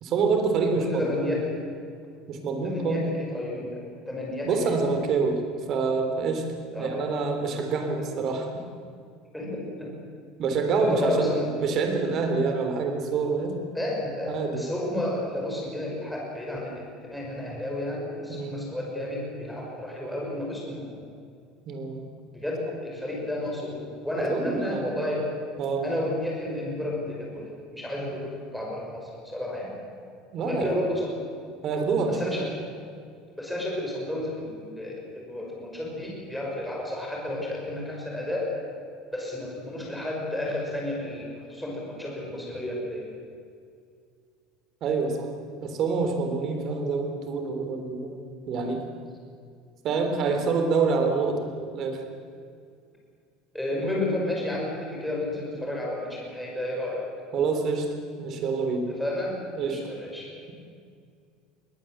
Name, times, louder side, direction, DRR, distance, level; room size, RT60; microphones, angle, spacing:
voice 1, 0.0-1.4 2.3-3.1 4.5-5.4 5.7-6.5 6.8-8.6 10.4-13.6 14.3-14.7 18.3-18.6 21.7-22.1 24.3-24.9 25.6-25.9 30.3-30.8 31.6-32.3 44.8-45.3 45.6-48.8 49.8-52.0 57.3-57.9 58.2-58.9 59.6-59.8, right 4 dB, 40° right, 5 dB, 3.6 m, -26 dB
voice 2, 0.7-1.5 2.6-4.7 6.7-7.3 9.3-9.9 10.8-11.4 13.7-20.8 22.3-25.2 25.8-29.7 30.4-31.1 32.1-32.5 33.4-38.5 39.1-43.1 53.5-57.0 59.0-60.3, left 1 dB, ahead, -3 dB, 6.2 m, -32 dB
21.5 x 19.0 x 8.1 m, 2.2 s
cardioid pair, 150°, 0 cm